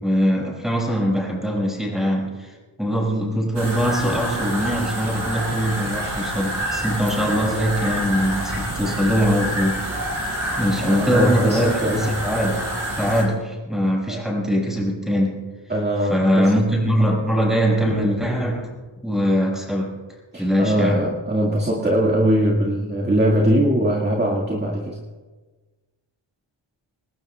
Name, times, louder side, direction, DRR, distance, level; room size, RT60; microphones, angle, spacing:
voice 1, 0.0-12.7 13.0-15.5 16.1-18.7 19.0-19.9 20.4-21.0, equal, ahead, -3 dB, 6.1 m, -22 dB
sound 1, 3.5-13.2, right 1 dB, 45° right, 5.2 m, -28 dB
voice 2, 10.8-12.2 14.1-14.2 15.7-16.6 20.3-25.0, equal, 20° right, -2 dB, 2.1 m, -21 dB
27.5 x 19.5 x 2.4 m, 1.3 s
wide cardioid pair, 145°, 49 cm